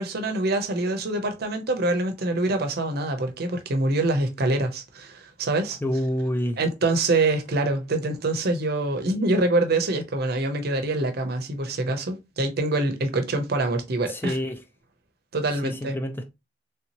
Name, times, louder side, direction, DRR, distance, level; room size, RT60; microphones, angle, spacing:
voice 1, 0.0-5.8 6.6-14.3 15.3-16.0, right 2 dB, 55° right, 0.7 m, -25 dB
voice 2, 5.8-6.6 14.0-14.6 15.6-16.3, left 1 dB, 10° left, 0.3 m, -27 dB
3.4 x 2.7 x 2.9 m
head